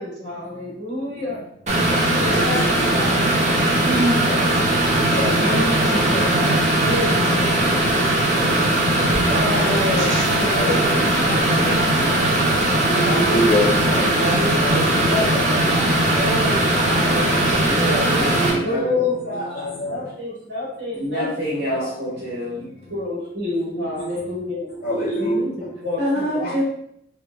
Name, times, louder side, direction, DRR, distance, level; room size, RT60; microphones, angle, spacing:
voice 1, 0.0-1.4 2.2-3.1 3.7-4.4 5.4-7.7 9.2-11.9 13.0-13.6 14.1-18.0 18.6-21.3 21.6-21.9 22.9-24.7 25.6-26.5, left 1 dB, 80° right, -9 dB, 1.4 m, -28 dB
sound 1, 1.7-18.5, right 1 dB, 40° right, 0.5 m, -19 dB
voice 2, 2.3-2.9 5.0-5.5 7.1-9.0 10.5-11.2 12.9-14.8 17.6-17.9 18.3-20.0 23.8-24.3 24.8-25.4 26.4-26.5, equal, 50° left, -5 dB, 0.5 m, -27 dB
voice 3, 8.5-9.2 11.6-12.6 14.2-15.4 17.7-19.1 20.9-22.6 25.2-25.5 26.0-26.6, equal, 65° right, -7 dB, 1.4 m, -28 dB
3.2 x 2.1 x 2.3 m, 0.72 s
head